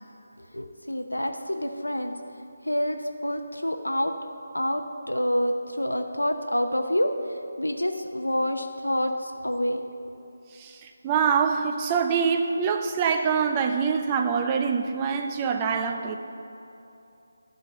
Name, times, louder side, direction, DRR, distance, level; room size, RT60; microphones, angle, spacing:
voice 1, 0.4-2.2 2.7-4.1 4.5-7.1 7.6-9.9, equal, 85° left, 5 dB, 0.7 m, -27 dB
voice 2, 10.6-16.2, right 6 dB, 20° right, 5 dB, 0.5 m, -25 dB
12.0 x 5.2 x 6.4 m, 2.8 s
figure-of-eight pair, 155°, 0 cm